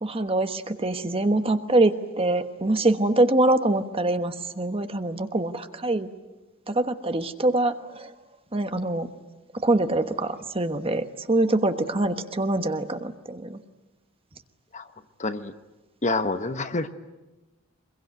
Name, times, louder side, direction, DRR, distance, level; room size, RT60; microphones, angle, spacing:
voice 1, 0.0-6.1 6.7-8.1 8.5-9.1 9.6-13.6, right 2 dB, 25° right, 8 dB, 1.2 m, -24 dB
voice 2, 15.2-15.5 16.0-16.9, left 2 dB, 35° left, 9 dB, 1.0 m, -27 dB
25.0 x 22.0 x 9.4 m, 1.1 s
head